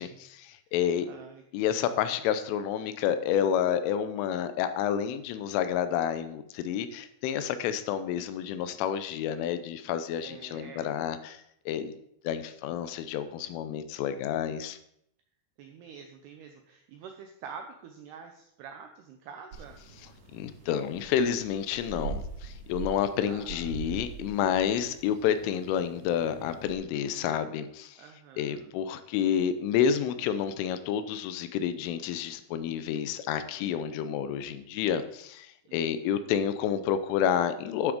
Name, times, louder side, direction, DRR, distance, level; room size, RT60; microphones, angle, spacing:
voice 1, 0.4-1.1 1.5-11.9 12.2-14.8 20.3-28.0 28.4-37.9, left 9 dB, 85° left, 11 dB, 3.3 m, -29 dB
voice 2, 1.0-1.4 10.2-10.9 15.6-19.8 23.3-23.6 28.0-28.7 35.7-36.3, right 6 dB, 85° right, 5 dB, 2.3 m, -47 dB
sound 1, 19.5-26.7, right 5 dB, 60° right, 3.7 m, -42 dB
12.0 x 6.1 x 5.1 m, 0.74 s
omnidirectional pair, 5.6 m